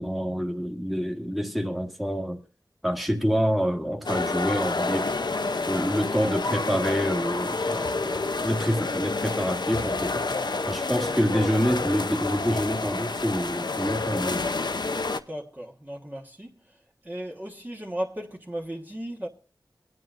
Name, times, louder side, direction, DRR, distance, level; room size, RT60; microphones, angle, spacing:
voice 1, 0.0-2.4 2.8-5.1 5.7-10.2 10.6-14.4, equal, ahead, 1.6 m, -27 dB
sound 1, 4.1-15.2, left 3 dB, 60° left, 0.7 m, -29 dB
voice 2, 15.3-16.8 17.0-19.3, right 1 dB, 20° right, 1.4 m, -36 dB
23.0 x 9.7 x 2.5 m
wide cardioid pair, 55°, 9 cm